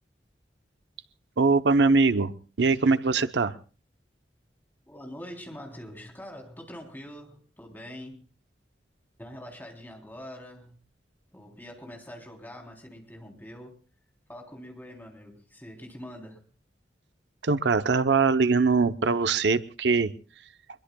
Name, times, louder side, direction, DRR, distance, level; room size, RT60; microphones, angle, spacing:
voice 1, 1.4-3.6 17.4-20.1, right 4 dB, 80° right, 12 dB, 0.7 m, -22 dB
voice 2, 4.9-8.2 9.2-10.8 11.3-13.8 14.3-16.4, equal, 10° left, 1 dB, 3.4 m, -44 dB
24.5 x 22.0 x 2.3 m, 0.37 s
head